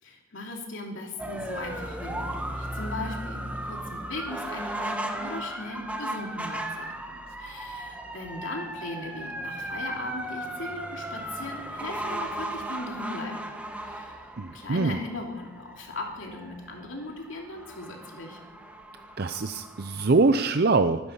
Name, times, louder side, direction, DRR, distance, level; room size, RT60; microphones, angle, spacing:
voice 1, 0.0-13.5 13.8-18.4, left 2 dB, 70° left, 0 dB, 2.8 m, -38 dB
sound 1, 1.2-20.3, right 1 dB, 5° right, 1.2 m, -36 dB
voice 2, 14.4-15.0 19.2-21.0, right 3 dB, 50° right, 9 dB, 0.6 m, -23 dB
24.5 x 9.7 x 5.6 m, 1.1 s
head